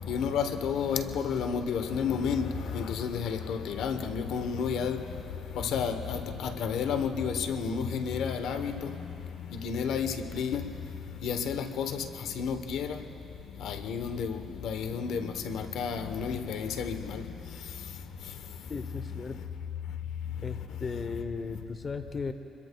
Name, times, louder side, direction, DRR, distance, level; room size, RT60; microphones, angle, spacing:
voice 1, 0.0-5.0 5.5-9.1 9.4-10.7 11.2-13.0 13.6-17.6, left 6 dB, 80° left, 0.9 m, -31 dB
voice 2, 18.7-19.4 20.4-22.3, left 4 dB, 40° left, 0.8 m, -36 dB
27.5 x 22.0 x 2.3 m
cardioid pair, 90°, 0 cm